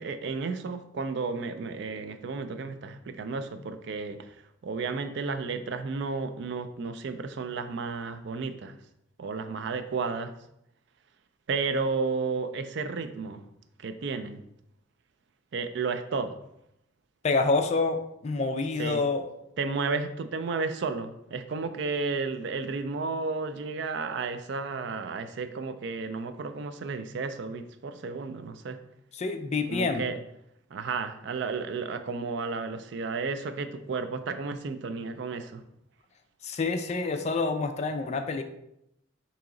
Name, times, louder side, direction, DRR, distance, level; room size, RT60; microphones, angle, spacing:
voice 1, 0.0-4.4 4.6-8.7 9.2-10.3 11.5-13.4 13.8-14.4 15.5-16.4 18.8-19.0 19.6-28.8 29.7-30.2 30.7-35.6, right 4 dB, 60° right, 10 dB, 0.4 m, -32 dB
voice 2, 17.2-19.2 29.2-30.1 36.4-38.4, left 3 dB, 35° left, 7 dB, 0.4 m, -27 dB
4.6 x 2.9 x 3.7 m, 0.81 s
head